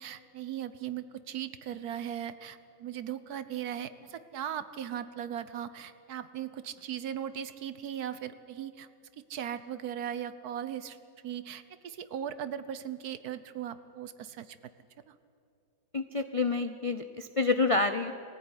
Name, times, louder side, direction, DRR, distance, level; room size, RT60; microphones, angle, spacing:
voice 1, 0.0-8.9 9.3-11.0 11.2-14.6 15.1-15.2, right 9 dB, 75° right, 13 dB, 1.4 m, -38 dB
voice 2, 15.9-18.1, left 3 dB, 55° left, 9 dB, 0.3 m, -28 dB
21.5 x 15.5 x 9.7 m, 2.6 s
omnidirectional pair, 1.7 m